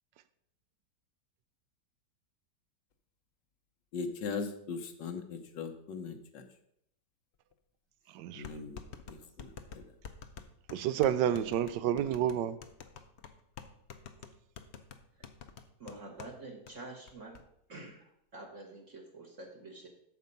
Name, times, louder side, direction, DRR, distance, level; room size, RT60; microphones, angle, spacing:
voice 1, 3.9-6.5 8.3-8.8 9.1-9.5, left 5 dB, 85° left, 1.6 m, -39 dB
sound 1, 7.5-7.6 8.4-16.4 16.7-16.8 17.1-17.4, left 7 dB, 60° left, 0.7 m, -48 dB
voice 2, 8.1-8.5 10.7-12.6, right 10 dB, 80° right, 1.2 m, -30 dB
voice 3, 15.8-17.4 17.7-19.9, right 2 dB, 45° right, 1.6 m, -47 dB
8.1 x 6.9 x 5.4 m
omnidirectional pair, 1.9 m